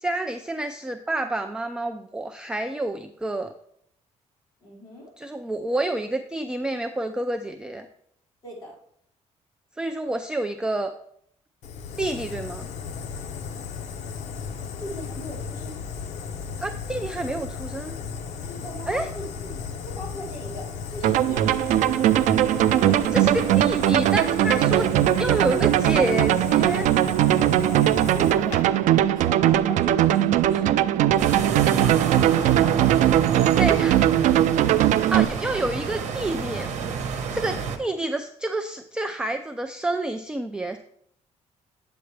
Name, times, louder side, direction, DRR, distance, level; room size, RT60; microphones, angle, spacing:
voice 1, 0.0-3.5 5.2-7.9 9.8-10.9 12.0-12.7 16.6-17.9 18.9-19.1 23.1-24.8 25.2-26.9 33.6-34.1 34.9-36.7 37.3-40.8, right 2 dB, 5° right, 5 dB, 0.3 m, -28 dB
voice 2, 4.6-5.1 8.4-8.7 14.8-15.8 18.4-21.6 22.6-23.5 24.7-24.8 27.3-28.9 29.1-30.8 31.1-31.7, equal, 30° left, -6 dB, 4.1 m, -39 dB
Fire, 11.6-28.6, left 6 dB, 70° left, 0.7 m, -35 dB
sound 1, 21.0-35.2, right 12 dB, 90° right, 0.4 m, -20 dB
sound 2, 31.2-37.8, right 6 dB, 65° right, 1.1 m, -29 dB
8.7 x 7.8 x 3.3 m, 0.67 s
cardioid pair, 170°, 12 cm